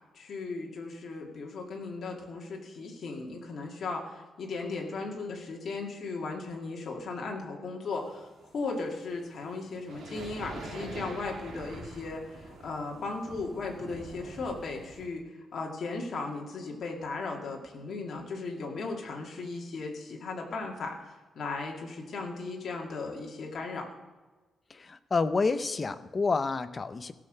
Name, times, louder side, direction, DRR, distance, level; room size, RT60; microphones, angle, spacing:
voice 1, 0.1-8.3 8.5-15.2 15.5-23.9, left 3 dB, 50° left, 0 dB, 2.2 m, -36 dB
sound 1, 7.9-15.1, right 2 dB, 70° right, 2.9 m, -45 dB
voice 2, 24.7-27.1, left 4 dB, 25° left, 11 dB, 0.6 m, -29 dB
16.0 x 6.6 x 6.5 m, 1.3 s
wide cardioid pair, 175°, 0 cm